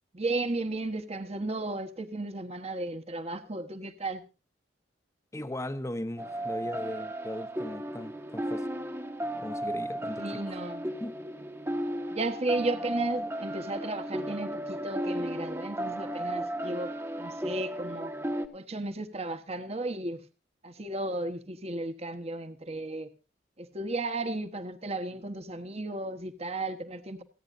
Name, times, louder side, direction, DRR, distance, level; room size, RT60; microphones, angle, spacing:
voice 1, 0.1-4.2 10.2-10.9 12.1-18.1 18.5-20.2 20.6-23.1 23.6-27.2, right 2 dB, 35° right, 1.2 m, -34 dB
voice 2, 5.3-8.7 9.4-10.6 11.0-11.1, left 1 dB, 15° left, 0.9 m, -38 dB
sound 1, 6.2-18.5, right 1 dB, 15° right, 1.1 m, -35 dB
28.5 x 9.7 x 2.6 m
head